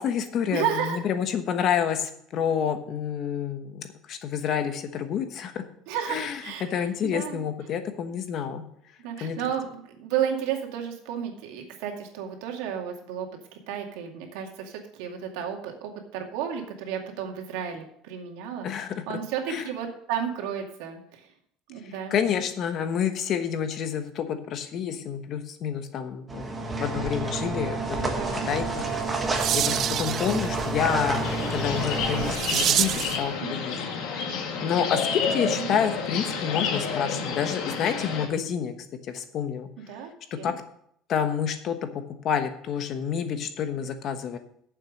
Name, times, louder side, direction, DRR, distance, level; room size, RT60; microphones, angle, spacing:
voice 1, 0.0-5.6 6.1-8.6 9.2-9.4 18.6-18.9 19.5-19.6 22.1-28.1 28.5-28.9 29.5-33.9 34.6-38.7 39.1-39.7 40.4-40.5 41.1-44.4, left 8 dB, 40° left, 8 dB, 1.2 m, -28 dB
voice 2, 0.5-1.0 5.9-7.4 9.0-18.7 19.1-21.3 21.7-22.1 28.0-28.5 33.4-33.7 35.4-35.7 39.8-40.5, right 8 dB, 85° right, 2 dB, 2.2 m, -33 dB
sound 1, 26.3-32.3, right 2 dB, 15° right, 1.3 m, -29 dB
sound 2, 28.8-33.3, right 10 dB, 35° right, 0.3 m, -29 dB
sound 3, 31.2-38.3, left 5 dB, 60° left, 1.9 m, -30 dB
8.9 x 7.4 x 6.5 m, 0.69 s
cardioid pair, 165°, 0 cm